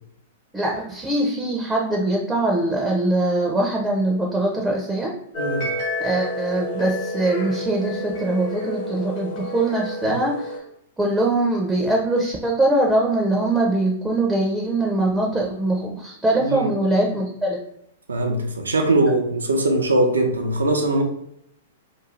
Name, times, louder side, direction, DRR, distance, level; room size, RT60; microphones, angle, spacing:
voice 1, 0.5-5.1 6.0-10.6 11.0-17.6, right 2 dB, 10° right, -1 dB, 0.5 m, -22 dB
sound 1, 5.3-10.6, left 1 dB, 45° left, 0.8 m, -30 dB
voice 2, 18.1-21.0, right 2 dB, 80° right, 3 dB, 0.6 m, -21 dB
2.4 x 2.3 x 3.1 m, 0.73 s
figure-of-eight pair, 105°, 0 cm